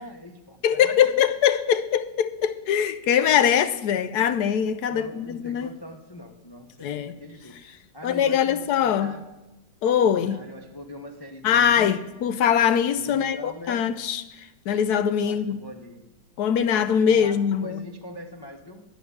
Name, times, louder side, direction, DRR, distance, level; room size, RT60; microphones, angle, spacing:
voice 1, 0.0-1.1 4.9-9.3 10.1-12.0 13.1-13.9 15.2-16.0 17.1-18.8, left 1 dB, 30° left, 0.4 m, -42 dB
voice 2, 0.6-5.7 6.8-7.2 8.0-9.1 9.8-10.4 11.4-15.6 16.4-17.9, left 8 dB, 70° left, 1.0 m, -22 dB
10.0 x 7.8 x 9.5 m
omnidirectional pair, 2.0 m